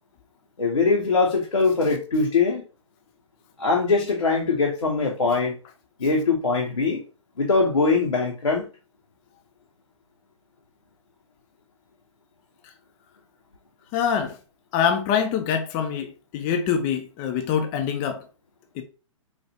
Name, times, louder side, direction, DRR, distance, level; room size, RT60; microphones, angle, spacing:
voice 1, 0.6-2.6 3.6-5.6 6.0-7.0 7.4-8.7, left 4 dB, 80° left, 0.8 m, -22 dB
voice 2, 13.9-14.4 14.7-18.3 18.7-18.8, left 7 dB, 25° left, 0.4 m, -25 dB
4.3 x 2.3 x 2.7 m
figure-of-eight pair, 115°, 17 cm